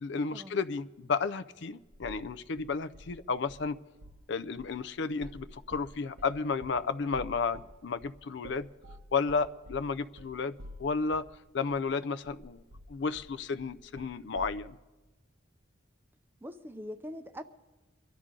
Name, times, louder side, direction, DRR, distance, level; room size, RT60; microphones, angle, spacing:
voice 1, 0.0-3.8 4.3-8.7 9.1-11.3 11.5-12.6 12.9-14.8, left 4 dB, 65° left, 0.5 m, -32 dB
sound 1, 1.9-2.3 2.6-3.7 4.0-4.3 4.6-11.4 11.7-11.8 12.2-14.6, equal, 80° right, 1.1 m, -49 dB
voice 2, 16.4-17.4, equal, 10° right, 0.6 m, -42 dB
24.5 x 11.5 x 3.7 m
head